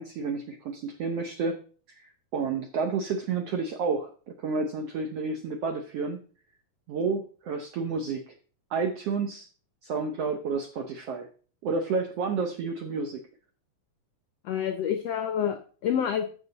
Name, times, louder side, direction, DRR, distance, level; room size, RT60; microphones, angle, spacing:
voice 1, 0.0-1.6 1.9-4.1 4.4-6.2 6.9-8.3 8.7-9.5 9.8-11.3 11.6-13.2, right 4 dB, 80° right, 5 dB, 1.4 m, -30 dB
voice 2, 14.4-16.2, left 9 dB, 80° left, 7 dB, 1.4 m, -28 dB
14.0 x 6.2 x 4.0 m, 0.41 s
omnidirectional pair, 3.9 m